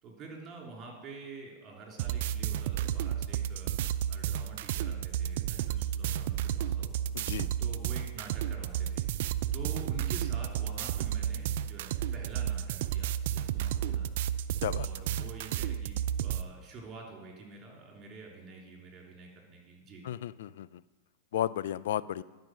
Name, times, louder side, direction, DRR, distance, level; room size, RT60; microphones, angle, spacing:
voice 1, 0.0-6.9 7.6-9.1 9.5-14.1 14.7-20.0, right 3 dB, 35° right, 0 dB, 3.0 m, -47 dB
sound 1, 2.0-16.4, right 10 dB, 65° right, 0.4 m, -32 dB
voice 2, 7.2-7.5 14.6-14.9 20.1-20.7 21.3-22.2, left 11 dB, 70° left, 18 dB, 0.3 m, -33 dB
12.0 x 5.2 x 6.1 m, 1.3 s
hypercardioid pair, 115°, 0 cm